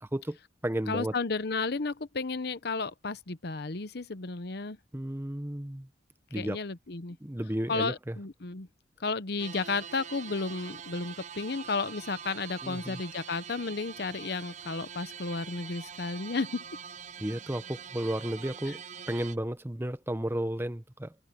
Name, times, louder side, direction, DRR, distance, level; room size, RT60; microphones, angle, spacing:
voice 1, 0.0-0.4 0.6-1.2 4.9-5.9 6.3-6.6 7.2-8.2 12.6-13.0 17.2-21.2, right 1 dB, 10° right, 0.8 m, -33 dB
voice 2, 0.9-4.8 6.3-7.2 7.7-8.7 9.0-16.5, left 4 dB, 60° left, 0.9 m, -33 dB
sound 1, 9.4-19.4, right 7 dB, 40° right, 0.7 m, -44 dB
head